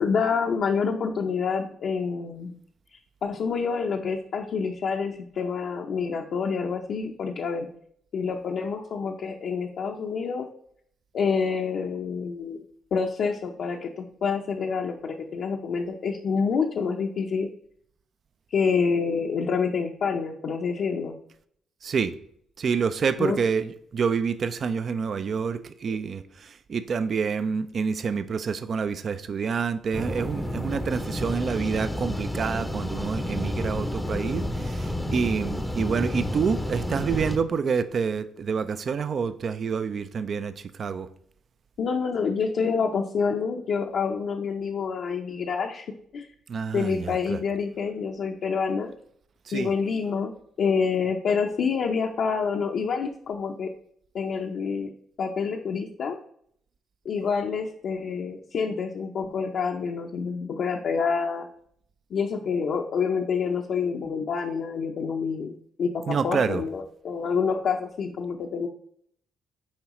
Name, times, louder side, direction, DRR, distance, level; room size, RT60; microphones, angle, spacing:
voice 1, 0.0-2.5 2.9-7.7 8.1-10.5 11.1-12.6 12.9-17.5 18.5-21.1 23.2-23.4 41.8-45.9 46.1-46.3 46.7-48.9 49.5-53.7 54.1-54.9 55.2-56.2 57.0-61.5 62.1-68.7, left 5 dB, 65° left, 1 dB, 0.6 m, -27 dB
voice 2, 21.8-22.1 22.6-41.1 46.5-47.4 49.5-49.7 66.1-66.6, right 6 dB, 50° right, 12 dB, 0.4 m, -28 dB
sound 1, 29.9-37.4, left 1 dB, 5° left, 0.6 m, -30 dB
7.2 x 4.7 x 3.0 m, 0.65 s
cardioid pair, 90°, 0 cm